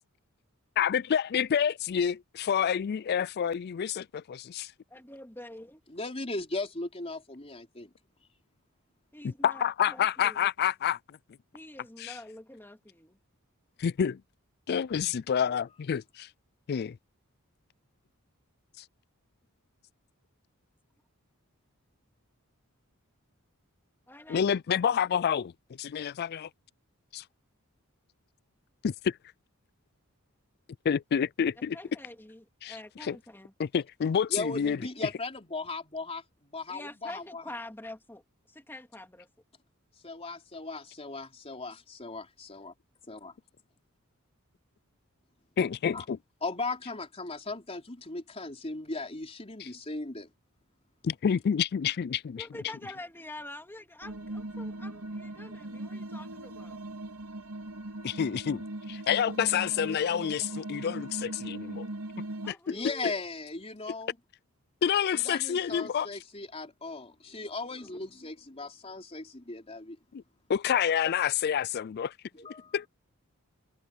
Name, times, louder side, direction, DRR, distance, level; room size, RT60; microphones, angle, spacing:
voice 1, 0.8-4.7 9.2-11.2 12.0-12.2 13.8-14.2 14.7-16.3 16.7-17.0 18.8-18.9 24.3-25.5 25.8-26.5 27.1-27.2 28.8-29.2 30.8-31.8 32.6-33.2 33.6-34.8 45.6-46.2 49.6-49.7 51.0-52.5 58.0-58.6 58.9-61.9 62.5-62.8 64.8-66.1 70.1-70.2 70.5-72.1 72.7-72.9, left 8 dB, 50° left, 0.3 m, -28 dB
voice 2, 4.9-5.8 9.1-10.5 11.5-13.2 24.1-24.5 31.7-33.5 36.7-38.2 38.5-39.3 52.4-56.8 62.4-63.1 70.7-70.8, left 1 dB, 10° left, 3.3 m, -46 dB
voice 3, 5.9-7.9 34.3-36.2 36.5-37.4 40.0-42.7 43.1-43.3 45.9-46.0 46.4-50.3 62.7-64.2 65.1-70.0 72.3-72.8, left 3 dB, 30° left, 3.9 m, -37 dB
sound 1, 54.0-62.5, right 1 dB, 85° right, 2.6 m, -39 dB
head